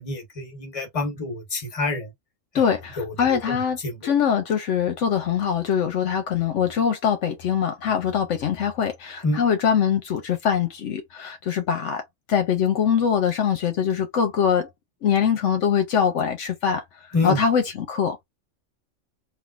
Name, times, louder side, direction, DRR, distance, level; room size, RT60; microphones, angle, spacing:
voice 1, 0.0-2.1 2.5-2.6 3.0-4.1 9.2-9.4 17.1-17.4, left 2 dB, 30° left, 1.2 m, -28 dB
voice 2, 2.5-12.0 12.3-14.7 15.0-16.8 17.2-18.2, left 7 dB, 75° left, 1.0 m, -23 dB
3.3 x 2.5 x 2.4 m
omnidirectional pair, 1.3 m